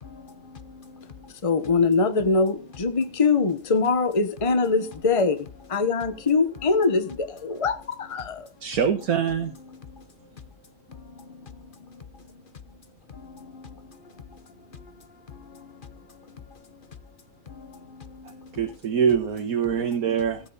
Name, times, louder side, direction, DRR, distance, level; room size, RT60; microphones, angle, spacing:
voice 1, 0.0-1.3 9.9-10.0 10.4-10.5 10.9-12.3 13.1-16.9 17.5-18.6, left 5 dB, 40° left, 1.0 m, -46 dB
voice 2, 1.4-8.5, left 4 dB, 25° left, 1.2 m, -23 dB
voice 3, 8.6-9.5 18.5-20.4, right 7 dB, 75° right, 1.7 m, -24 dB
17.0 x 8.1 x 4.1 m
omnidirectional pair, 1.6 m